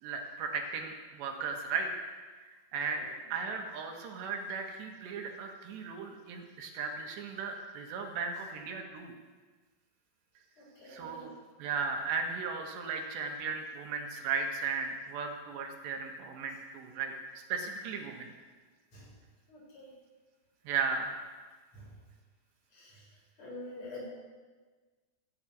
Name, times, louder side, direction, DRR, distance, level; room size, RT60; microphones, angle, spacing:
voice 1, 0.0-1.9 2.4-3.1 3.3-9.1 10.9-11.3 11.6-18.3 20.7-21.2, right 5 dB, 85° right, 3 dB, 3.6 m, -36 dB
voice 2, 10.6-11.3 18.9-19.1 19.5-19.9 21.7-21.9 22.7-23.0 23.4-24.0, left 2 dB, 40° left, -4 dB, 5.5 m, -47 dB
14.0 x 8.7 x 8.5 m, 1.4 s
omnidirectional pair, 4.9 m